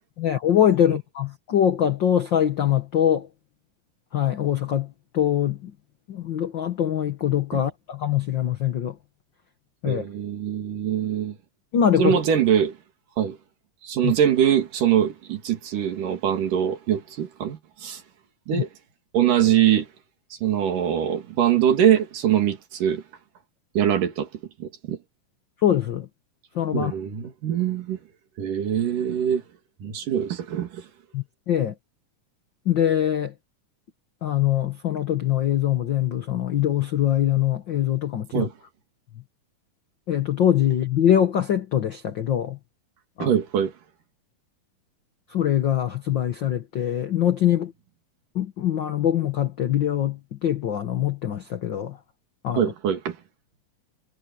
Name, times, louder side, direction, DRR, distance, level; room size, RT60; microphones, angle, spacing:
voice 1, 0.2-3.3 4.1-4.9 5.1-5.7 6.1-8.9 9.8-10.0 11.7-12.2 14.0-14.1 18.6-18.7 25.6-26.1 26.5-26.9 31.1-31.7 32.7-33.3 34.2-38.5 40.1-42.6 43.2-43.4 45.3-47.7 48.3-52.0 52.4-52.7, left 10 dB, 90° left, 1.0 m, -23 dB
voice 2, 9.9-11.4 12.0-12.8 13.2-13.4 13.8-18.0 18.5-18.7 19.1-19.9 20.4-23.0 23.8-24.3 24.6-25.0 26.7-28.0 28.4-29.4 29.8-30.9 38.3-38.5 43.2-43.7 52.6-53.2, right 9 dB, 75° right, 3.9 m, -23 dB
omnidirectional pair, 3.9 m